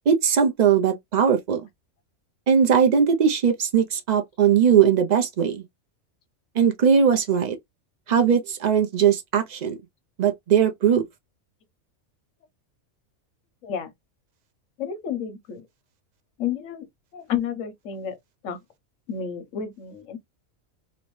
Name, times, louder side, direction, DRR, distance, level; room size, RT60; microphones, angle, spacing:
voice 1, 0.1-1.6 2.5-5.6 6.6-7.6 8.1-9.8 10.2-11.0, right 7 dB, 85° right, 0.3 m, -19 dB
voice 2, 14.8-15.7 16.4-16.9 17.1-18.1 18.4-18.6 19.1-20.2, left 8 dB, 65° left, 1.2 m, -30 dB
3.0 x 2.6 x 3.0 m
omnidirectional pair, 1.4 m